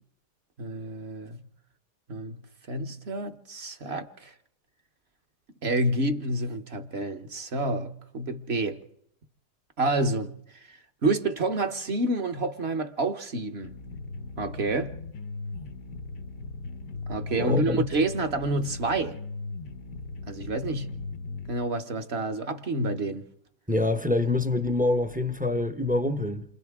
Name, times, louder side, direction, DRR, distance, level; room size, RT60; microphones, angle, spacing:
voice 1, 0.6-1.4 2.1-4.3 5.6-8.8 9.8-13.7 14.4-15.0 17.1-19.2 20.3-21.0 21.5-23.3, right 2 dB, 45° right, 1.1 m, -29 dB
sound 1, 13.6-21.6, left 3 dB, 90° left, 1.8 m, -38 dB
voice 2, 17.4-17.9 23.7-26.4, left 2 dB, 10° right, 0.5 m, -26 dB
28.5 x 26.0 x 3.6 m
omnidirectional pair, 1.7 m